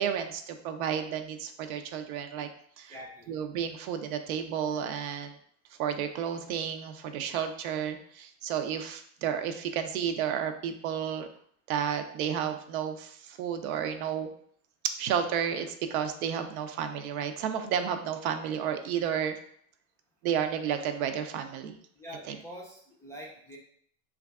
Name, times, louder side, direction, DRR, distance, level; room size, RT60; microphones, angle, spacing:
voice 1, 0.0-2.5 2.8-3.0 3.3-5.3 5.8-11.3 11.7-14.3 15.0-19.3 20.2-21.7 22.3-22.4, right 8 dB, 90° right, 7 dB, 0.6 m, -32 dB
voice 2, 2.9-3.3 21.9-23.6, equal, 10° left, -3 dB, 0.3 m, -45 dB
3.2 x 2.4 x 3.4 m, 0.64 s
supercardioid pair, 130°, 41 cm